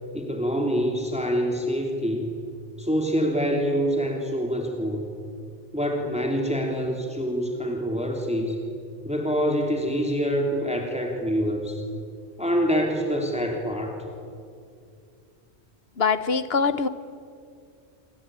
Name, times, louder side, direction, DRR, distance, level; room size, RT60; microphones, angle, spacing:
voice 1, 0.1-2.3 2.8-5.0 5.7-8.6 9.0-11.8 12.4-13.9, equal, 5° right, 1 dB, 3.2 m, -26 dB
voice 2, 16.0-16.9, left 5 dB, 65° left, 13 dB, 1.3 m, -23 dB
27.5 x 24.0 x 9.0 m, 2.4 s
omnidirectional pair, 1.1 m